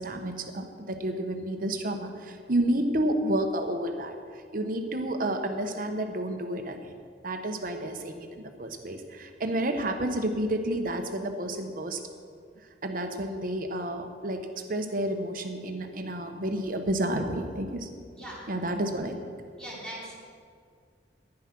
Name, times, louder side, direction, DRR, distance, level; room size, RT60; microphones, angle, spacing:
voice 1, 0.0-6.9 7.2-12.0 12.8-17.9 18.5-19.2, right 1 dB, 50° right, 6 dB, 1.0 m, -30 dB
voice 2, 18.1-18.4 19.6-20.2, right 1 dB, 5° left, -7 dB, 3.4 m, -40 dB
11.0 x 9.9 x 6.0 m, 2.2 s
head